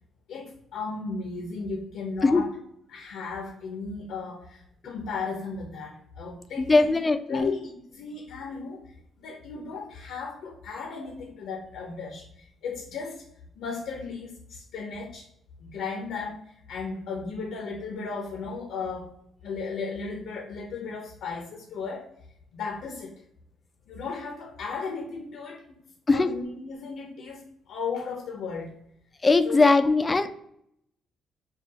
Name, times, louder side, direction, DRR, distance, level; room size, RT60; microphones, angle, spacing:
voice 1, 0.3-2.5 2.9-6.9 7.3-13.2 13.6-15.3 15.6-19.1 19.4-22.1 22.5-23.1 23.9-25.8 26.1-27.4 27.7-28.7 29.4-29.9, left 4 dB, 80° left, 1 dB, 0.7 m, -35 dB
voice 2, 6.6-7.5 26.1-26.3 29.2-30.3, left 3 dB, 25° left, 9 dB, 0.3 m, -20 dB
4.8 x 2.3 x 2.7 m, 0.71 s
cardioid pair, 90°, 0 cm